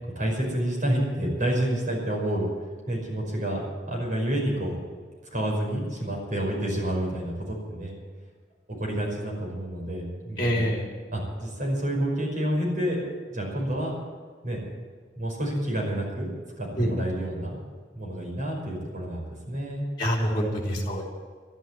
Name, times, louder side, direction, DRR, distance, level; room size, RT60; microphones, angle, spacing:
voice 1, 0.2-2.5 2.9-4.8 5.3-7.9 8.7-10.7 11.1-13.0 13.3-13.9 14.4-14.6 15.2-16.3 16.6-17.6 17.9-19.8 20.5-21.0, right 1 dB, 45° right, -1 dB, 5.5 m, -29 dB
voice 2, 10.4-10.8 16.8-16.9 20.0-21.0, equal, 25° left, -1 dB, 3.3 m, -26 dB
13.0 x 11.5 x 9.4 m, 1.5 s
head